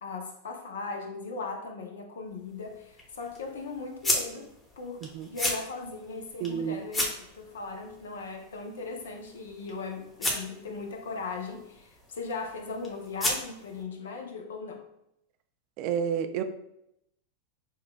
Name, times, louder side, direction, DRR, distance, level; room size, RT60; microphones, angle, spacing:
voice 1, 0.0-7.1 7.3-14.8, left 4 dB, 75° left, 3 dB, 0.7 m, -38 dB
sound 1, 2.2-13.8, left 1 dB, 15° left, 1.0 m, -36 dB
voice 2, 6.4-6.8 15.8-16.4, right 8 dB, 50° right, 9 dB, 0.4 m, -30 dB
6.2 x 2.3 x 2.3 m, 0.82 s
hypercardioid pair, 95°, 0 cm